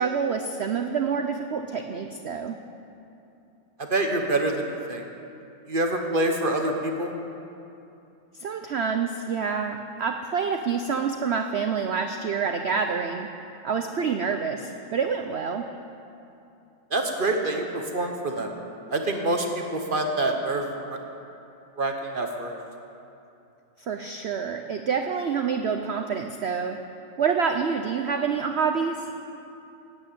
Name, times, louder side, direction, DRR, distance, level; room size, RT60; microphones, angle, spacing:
voice 1, 0.0-2.6 8.4-13.3 13.6-15.7 23.8-26.8 27.2-29.1, right 6 dB, 80° right, 6 dB, 0.5 m, -27 dB
voice 2, 3.8-5.0 5.7-7.1 16.9-18.5 18.9-21.0 21.8-22.6, right 2 dB, 35° right, 3 dB, 1.0 m, -26 dB
12.0 x 8.9 x 8.9 m, 2.8 s
omnidirectional pair, 1.9 m